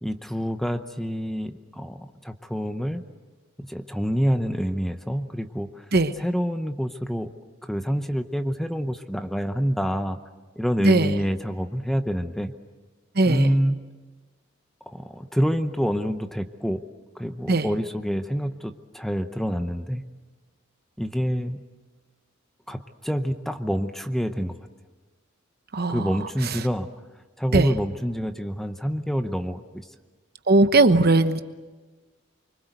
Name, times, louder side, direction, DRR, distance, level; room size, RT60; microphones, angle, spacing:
voice 1, 0.0-3.0 3.6-5.9 6.2-7.3 7.6-10.2 10.6-12.5 13.2-13.8 14.8-16.8 17.1-20.0 21.0-21.6 22.7-24.6 25.9-26.9 27.4-29.9, equal, ahead, 8 dB, 0.8 m, -27 dB
voice 2, 10.8-11.1 13.1-13.5 17.5-17.7 25.7-26.1 27.5-27.7 30.5-31.4, right 2 dB, 50° right, 10 dB, 1.1 m, -19 dB
25.5 x 24.0 x 8.1 m, 1.3 s
head